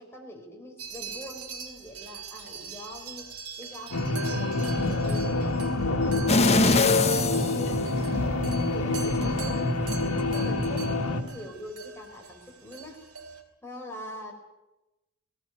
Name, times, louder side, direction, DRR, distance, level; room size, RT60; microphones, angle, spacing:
voice 1, 0.0-3.3 3.6-9.7 10.1-13.0 13.6-14.3, left 1 dB, 10° left, 0 dB, 4.5 m, -43 dB
sound 1, 0.8-13.4, right 6 dB, 85° right, 4.0 m, -43 dB
sound 2, 3.9-11.2, left 2 dB, 85° left, 2.3 m, -27 dB
sound 3, 6.3-8.4 8.9-9.0, left 3 dB, 30° left, 1.3 m, -23 dB
19.0 x 18.0 x 9.2 m, 1.0 s
head